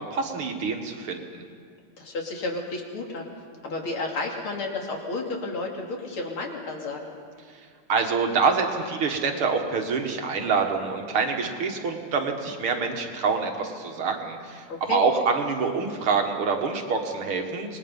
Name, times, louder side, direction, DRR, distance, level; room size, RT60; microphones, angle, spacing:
voice 1, 0.0-1.4 7.9-17.8, right 5 dB, 85° right, 3 dB, 2.7 m, -26 dB
voice 2, 2.0-3.3 3.6-7.1 14.7-15.0, left 2 dB, 80° left, 0 dB, 3.5 m, -32 dB
26.5 x 20.0 x 5.5 m, 2.1 s
omnidirectional pair, 2.3 m